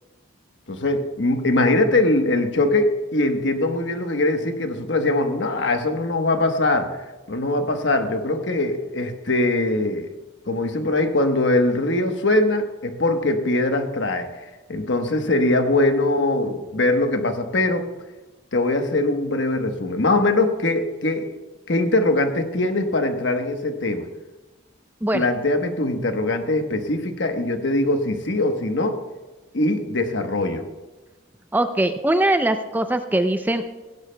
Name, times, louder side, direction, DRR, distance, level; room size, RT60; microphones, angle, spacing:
voice 1, 0.7-6.9 7.3-10.1 10.5-14.3 14.7-17.8 18.5-21.3 21.7-24.1 25.1-29.0 29.5-30.6, left 2 dB, 65° left, 6 dB, 1.1 m, -22 dB
voice 2, 31.5-33.8, right 1 dB, 10° right, 8 dB, 0.4 m, -21 dB
17.0 x 16.5 x 2.2 m, 1.1 s
head